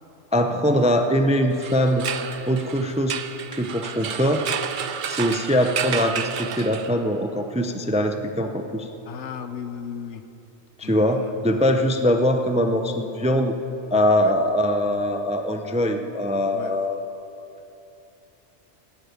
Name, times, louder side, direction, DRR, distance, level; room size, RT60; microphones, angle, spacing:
voice 1, 0.3-2.0 2.5-3.2 3.5-4.4 5.1-8.9 10.8-13.5 13.9-17.0, equal, 10° right, 6 dB, 0.4 m, -22 dB
sound 1, 1.5-7.2, right 8 dB, 55° right, 0.6 m, -31 dB
voice 2, 9.1-10.2 10.8-11.3 14.2-14.3 16.5-16.7, left 7 dB, 80° left, 9 dB, 1.1 m, -35 dB
11.5 x 9.0 x 9.6 m, 3.0 s
omnidirectional pair, 1.2 m